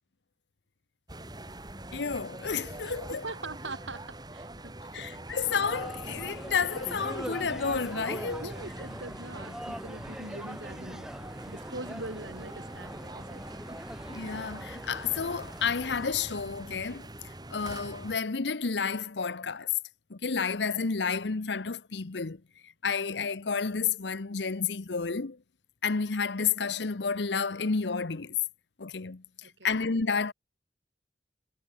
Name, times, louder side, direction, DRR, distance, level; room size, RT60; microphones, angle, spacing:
sound 1, 1.1-18.2, right 1 dB, 20° right, 3.3 m, -44 dB
voice 1, 1.9-3.2 4.9-8.5 14.1-17.1 17.5-19.7 20.1-22.4 22.8-25.4 25.8-28.4 28.8-29.2 29.6-30.3, left 5 dB, 70° left, 0.9 m, -30 dB
voice 2, 3.1-5.4 8.4-11.1 11.5-13.4 29.4-29.7, right 2 dB, 90° right, 5.7 m, -42 dB
sound 2, 5.5-16.1, equal, 5° right, 1.1 m, -43 dB
head